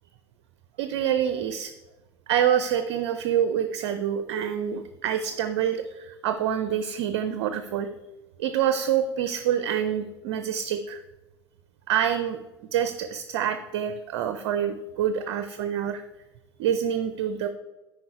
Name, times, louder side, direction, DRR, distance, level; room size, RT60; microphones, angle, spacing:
voice 1, 0.8-1.7 2.3-7.9 8.4-11.0 11.9-12.4 12.7-16.0 16.6-17.5, right 9 dB, 55° right, 10 dB, 0.5 m, -26 dB
9.3 x 5.1 x 4.5 m, 1.1 s
figure-of-eight pair, 75°, 14 cm